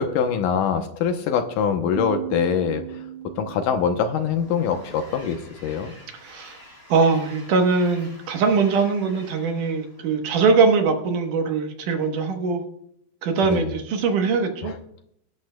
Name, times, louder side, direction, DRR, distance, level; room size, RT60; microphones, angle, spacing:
voice 1, 0.0-2.8 3.4-5.9 13.4-13.7 14.6-14.8, left 7 dB, 75° left, 6 dB, 2.2 m, -24 dB
Piano, 2.0-5.4, right 12 dB, 85° right, 2.5 m, -37 dB
Train, 3.4-10.9, left 1 dB, 30° left, 5.8 m, -48 dB
voice 2, 6.2-6.6 6.9-12.6 13.2-14.7, right 4 dB, 70° right, 5 dB, 2.5 m, -21 dB
22.0 x 11.5 x 2.2 m, 0.71 s
omnidirectional pair, 4.1 m